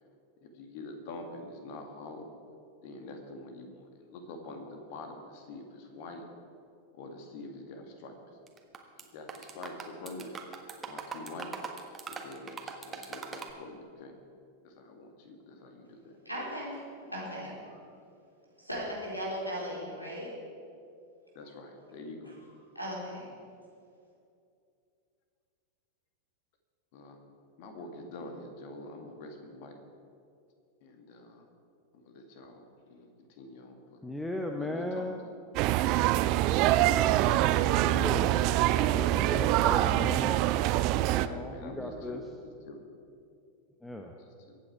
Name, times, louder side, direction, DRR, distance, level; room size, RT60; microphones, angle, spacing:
voice 1, 0.4-2.3 2.8-6.2 6.9-8.1 9.0-10.4 10.8-11.5 12.1-14.1 14.6-16.1 21.3-22.4 26.9-27.2 27.6-29.8 30.8-31.4 31.9-34.0 34.5-35.4 36.2-36.7 41.1-42.9 44.0-44.6, left 2 dB, 50° left, 4 dB, 2.1 m, -45 dB
sound 1, 8.5-9.0 9.3-13.5, right 5 dB, 20° right, 1.4 m, -41 dB
voice 2, 16.2-17.8 18.6-20.4 22.7-23.3, equal, 85° left, -4 dB, 4.0 m, -37 dB
voice 3, 34.0-35.2 37.8-38.5 38.9-40.4 41.2-42.2 43.8-44.1, left 1 dB, 5° left, 3 dB, 0.9 m, -37 dB
sound 2, 35.5-41.3, right 14 dB, 40° right, 0.5 m, -25 dB
23.0 x 8.8 x 4.8 m, 2.5 s
figure-of-eight pair, 90°, 0 cm